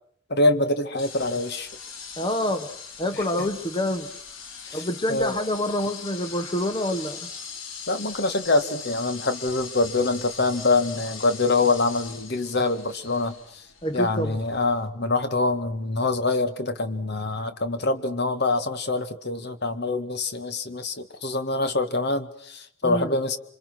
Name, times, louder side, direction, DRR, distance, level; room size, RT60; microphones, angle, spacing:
voice 1, 0.3-1.7 3.4-3.5 4.6-5.4 7.9-13.4 13.9-23.4, left 2 dB, 50° left, 9 dB, 2.0 m, -25 dB
sound 1, 1.0-14.9, left 6 dB, 75° left, 2.9 m, -40 dB
voice 2, 2.2-2.7 3.0-4.1 4.7-7.3 13.8-14.4 22.8-23.1, left 1 dB, 25° left, 9 dB, 1.2 m, -27 dB
28.0 x 26.0 x 6.2 m, 0.64 s
head